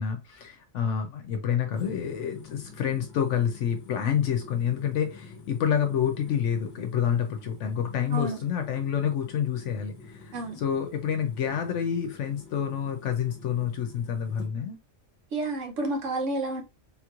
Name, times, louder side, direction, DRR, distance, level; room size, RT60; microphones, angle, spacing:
voice 1, 0.0-14.8, left 8 dB, 75° left, 0.9 m, -28 dB
sound 1, 1.7-14.5, left 4 dB, 45° left, 0.9 m, -47 dB
voice 2, 15.3-16.6, right 2 dB, 70° right, 1.2 m, -30 dB
3.7 x 3.0 x 2.3 m
omnidirectional pair, 1.3 m